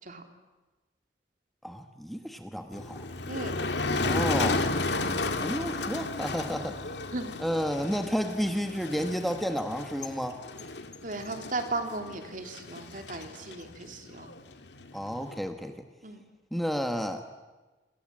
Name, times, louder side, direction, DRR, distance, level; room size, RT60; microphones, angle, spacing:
voice 1, 1.6-3.1 3.9-4.7 5.4-6.8 7.4-10.4 14.9-15.7 16.5-17.2, equal, ahead, 6 dB, 1.4 m, -31 dB
Motor vehicle (road), 2.7-15.4, left 3 dB, 70° left, 2.1 m, -33 dB
voice 2, 3.3-3.6 7.1-7.3 11.0-14.3 16.0-16.2, right 2 dB, 45° right, 5 dB, 3.2 m, -36 dB
27.5 x 27.0 x 7.7 m, 1.2 s
head